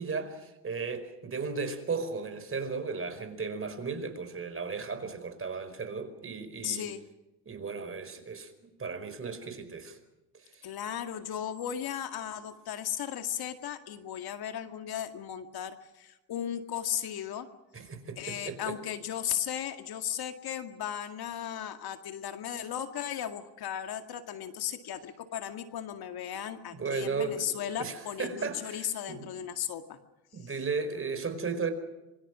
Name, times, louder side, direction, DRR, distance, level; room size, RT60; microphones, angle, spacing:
voice 1, 0.0-6.9 7.4-10.0 10.3-10.7 17.7-18.7 26.7-29.3 30.3-31.7, right 4 dB, 25° right, 9 dB, 5.0 m, -35 dB
voice 2, 6.6-7.0 10.6-17.5 18.2-30.0 30.4-30.5, left 10 dB, 50° left, 7 dB, 2.1 m, -36 dB
26.5 x 24.0 x 6.2 m, 1.0 s
supercardioid pair, 90°, 47 cm